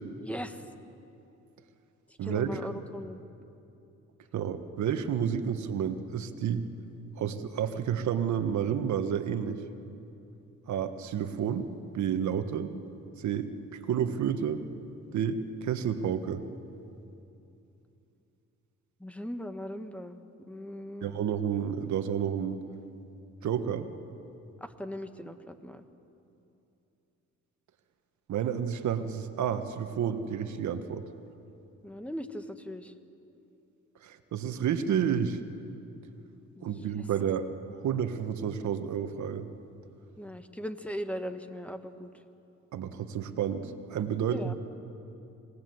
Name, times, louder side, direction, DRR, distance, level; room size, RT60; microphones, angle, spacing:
voice 1, 0.2-0.6 2.1-3.2 19.0-20.2 20.5-21.3 24.6-25.8 31.8-32.9 36.6-36.9 40.2-42.1 44.3-44.5, equal, 5° left, 8 dB, 1.5 m, -39 dB
voice 2, 2.2-2.8 4.3-6.7 7.2-9.6 10.7-11.7 11.9-12.7 13.2-14.6 15.1-16.4 21.0-22.6 23.4-23.9 28.3-31.0 34.0-35.4 36.6-37.5 37.7-39.5 42.7-44.5, right 8 dB, 70° right, 8 dB, 1.5 m, -30 dB
27.0 x 19.0 x 8.0 m, 2.8 s
cardioid pair, 90°, 30 cm